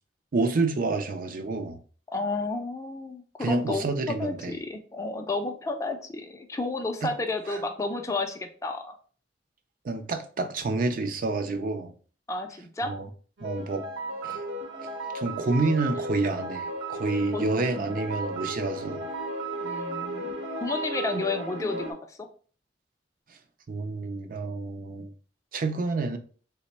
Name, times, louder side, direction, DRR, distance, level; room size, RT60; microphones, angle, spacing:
voice 1, 0.3-1.8 3.4-4.6 7.0-7.1 7.5-7.6 9.8-11.9 12.8-13.1 13.4-13.8 14.2-14.4 14.8-14.9 15.1-19.1 23.7-25.1 25.5-26.2, right 3 dB, 50° right, 0.4 m, -28 dB
voice 2, 2.1-3.9 4.2-8.9 12.3-13.0 17.3-17.4 17.8-17.9 19.6-22.2, left 3 dB, 20° left, 0.4 m, -32 dB
sound 1, 13.4-21.9, right 1 dB, 80° right, 0.9 m, -34 dB
3.2 x 2.1 x 4.1 m
head